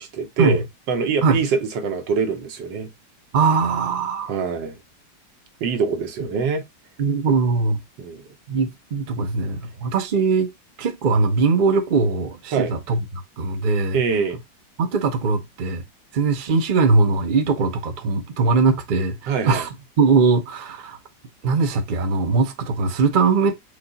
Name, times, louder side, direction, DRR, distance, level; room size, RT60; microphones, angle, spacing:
voice 1, 0.0-2.9 4.3-4.8 5.6-6.6 7.3-7.4 8.0-8.2 12.5-12.7 13.9-14.4 19.3-19.7, right 5 dB, 80° right, 1.6 m, -24 dB
voice 2, 3.3-4.3 7.0-7.8 8.5-10.5 10.8-13.0 13.4-14.0 14.8-15.8 16.1-19.7 20.0-21.0 21.4-23.5, right 4 dB, 50° right, 0.5 m, -20 dB
5.0 x 2.4 x 3.8 m
omnidirectional pair, 1.9 m